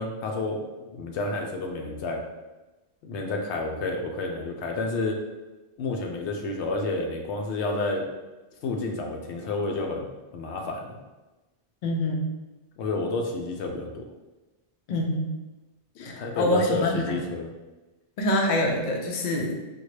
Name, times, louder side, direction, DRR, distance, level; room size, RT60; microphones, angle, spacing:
voice 1, 0.0-2.2 3.0-5.2 5.8-8.1 8.6-10.1 10.3-11.0 12.8-14.1 16.0-17.5, left 2 dB, 85° left, 2 dB, 0.9 m, -30 dB
voice 2, 11.8-12.3 14.9-15.3 16.0-17.2 18.2-19.5, left 1 dB, 55° left, 1 dB, 0.6 m, -26 dB
3.7 x 2.3 x 3.1 m, 1.1 s
omnidirectional pair, 1.1 m